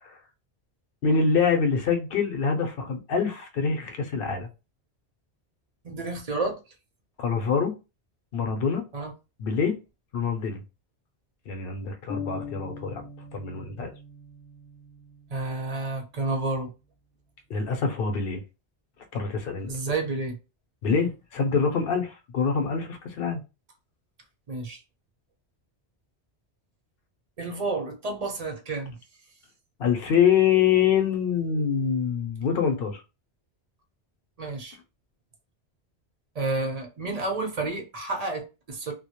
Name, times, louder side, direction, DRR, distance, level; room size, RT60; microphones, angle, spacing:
voice 1, 1.0-4.5 7.2-7.8 8.3-8.9 9.4-9.8 10.1-10.6 11.5-13.1 13.3-13.9 17.5-18.4 19.1-19.7 20.8-23.4 29.8-33.0, left 6 dB, 65° left, 0.7 m, -25 dB
voice 2, 5.8-6.6 8.9-9.1 15.3-16.7 19.7-20.4 24.5-24.8 27.4-29.0 34.4-34.8 36.3-38.9, right 3 dB, 45° right, 0.6 m, -30 dB
sound 1, 12.1-15.9, left 6 dB, 30° left, 0.4 m, -41 dB
2.2 x 2.0 x 2.8 m
omnidirectional pair, 1.1 m